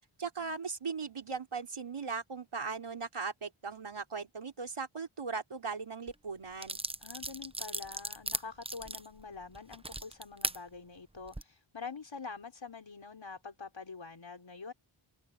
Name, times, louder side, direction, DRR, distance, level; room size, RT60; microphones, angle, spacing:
voice 1, 0.2-6.8, right 5 dB, 80° right, 3.9 m, -38 dB
sound 1, 6.1-6.2 6.6-10.6 11.2-11.4, right 2 dB, 10° right, 0.8 m, -38 dB
voice 2, 7.0-14.7, left 4 dB, 65° left, 4.1 m, -45 dB
wide cardioid pair, 80°, 50 cm